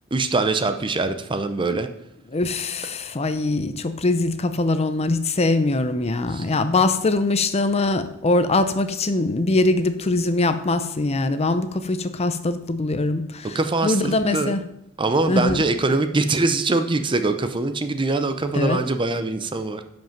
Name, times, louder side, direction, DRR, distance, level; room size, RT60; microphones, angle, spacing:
voice 1, 0.1-1.9 6.3-6.5 13.5-14.6 15.0-19.8, right 3 dB, 25° right, 9 dB, 0.5 m, -23 dB
voice 2, 2.3-14.6 15.3-15.6 18.5-18.8, left 2 dB, 30° left, 11 dB, 0.6 m, -22 dB
11.0 x 5.3 x 5.9 m, 0.79 s
head